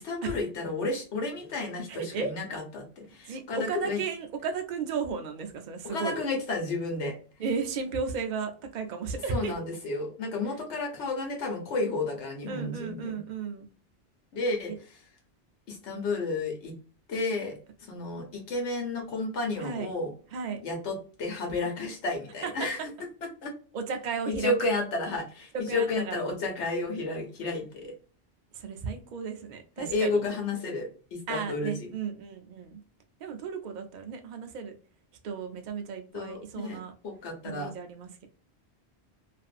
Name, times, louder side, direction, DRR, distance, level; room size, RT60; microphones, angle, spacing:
voice 1, 0.0-4.0 5.8-7.2 9.3-13.2 14.3-14.7 15.7-16.7 17.1-20.1 20.6-22.8 23.2-23.5 24.3-27.9 29.8-31.9 36.1-37.7, left 2 dB, 80° left, 3 dB, 1.2 m, -32 dB
voice 2, 1.9-2.3 3.3-6.2 7.4-9.5 12.5-13.6 19.6-19.9 20.3-20.6 22.4-22.7 23.7-24.7 25.5-26.2 28.5-30.2 31.3-32.8 33.2-34.8 35.2-36.9 37.4-38.3, right 5 dB, 55° right, 5 dB, 0.6 m, -34 dB
2.5 x 2.5 x 2.4 m, 0.40 s
omnidirectional pair, 1.1 m